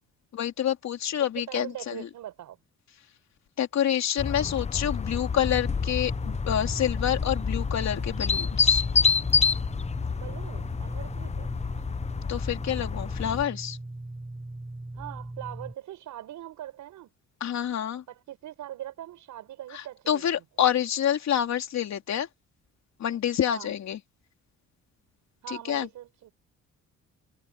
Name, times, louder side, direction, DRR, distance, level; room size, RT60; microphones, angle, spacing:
voice 1, 0.3-2.1 3.6-8.8 12.3-13.8 17.4-18.0 19.7-22.3 23.0-24.0 25.5-25.9, left 10 dB, 65° left, 3.4 m, -28 dB
voice 2, 1.4-2.6 10.1-11.6 15.0-17.1 18.1-20.4 23.5-23.7 25.4-26.3, right 13 dB, 80° right, 5.6 m, -41 dB
sound 1, 4.2-13.5, left 5 dB, 20° left, 0.6 m, -28 dB
sound 2, 5.4-15.7, right 2 dB, 15° right, 6.7 m, -39 dB
cardioid pair, 90°, 30 cm